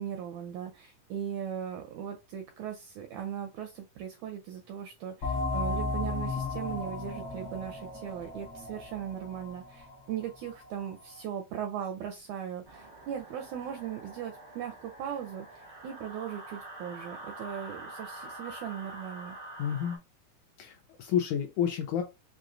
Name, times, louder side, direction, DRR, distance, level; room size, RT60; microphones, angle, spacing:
voice 1, 0.0-19.4, right 9 dB, 85° right, 4 dB, 1.7 m, -38 dB
sound 1, 5.2-10.5, left 3 dB, 60° left, 1.1 m, -35 dB
sound 2, 12.6-20.0, right 2 dB, 50° right, 0.7 m, -46 dB
voice 2, 19.6-20.0 20.6-22.0, left 9 dB, 85° left, 4 dB, 1.8 m, -30 dB
6.0 x 2.4 x 2.5 m, 0.26 s
omnidirectional pair, 3.9 m